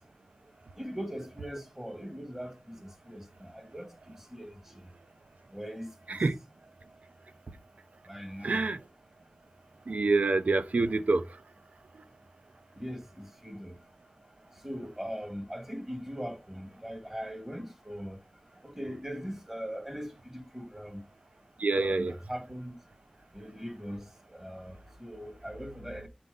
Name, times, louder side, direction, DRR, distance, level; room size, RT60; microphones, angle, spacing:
voice 1, 0.7-4.9 5.5-6.2 8.1-8.6 12.8-13.8 14.6-18.2 18.6-21.0 21.7-22.8 23.3-26.1, equal, 15° right, 2.5 m, -41 dB
voice 2, 8.4-8.8 9.9-11.4 21.6-22.1, right 3 dB, 85° right, 0.6 m, -26 dB
7.5 x 4.2 x 3.5 m
wide cardioid pair, 40°, 2 cm